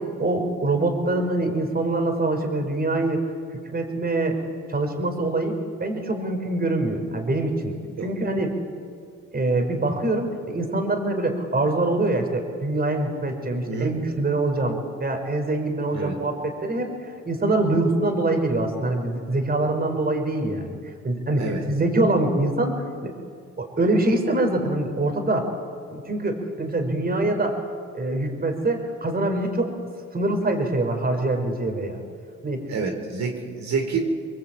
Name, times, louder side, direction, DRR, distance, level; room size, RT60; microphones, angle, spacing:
voice 1, 0.2-3.2 3.5-4.4 4.7-5.5 5.8-7.8 8.0-8.6 9.3-20.8 21.0-22.7 23.0-23.1 23.6-25.5 25.9-27.6 27.9-29.7 30.1-32.0 32.4-32.6, right 2 dB, 30° right, 5 dB, 5.1 m, -24 dB
voice 2, 32.7-34.1, right 4 dB, 65° right, 2 dB, 4.4 m, -28 dB
27.0 x 22.0 x 9.0 m, 2.2 s
cardioid pair, 90°, 30 cm